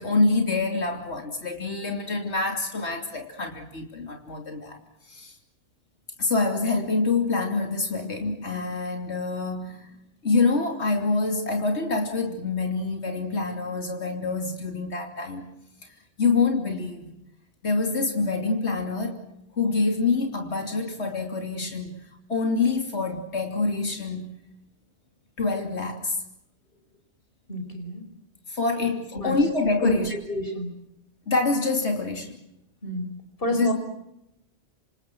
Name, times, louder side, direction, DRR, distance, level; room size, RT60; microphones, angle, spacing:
voice 1, 0.0-4.8 5.1-5.3 6.2-10.0 10.2-15.4 15.8-17.1 17.6-19.2 19.5-24.4 25.4-26.2 28.5-30.1 31.3-32.4 33.5-33.7, left 3 dB, 80° left, 4 dB, 3.3 m, -26 dB
voice 2, 27.5-28.0 29.1-29.4 29.8-29.9 30.3-30.8 32.8-33.1 33.4-33.7, equal, 55° left, 4 dB, 5.2 m, -28 dB
27.5 x 27.0 x 6.2 m, 0.82 s
omnidirectional pair, 1.1 m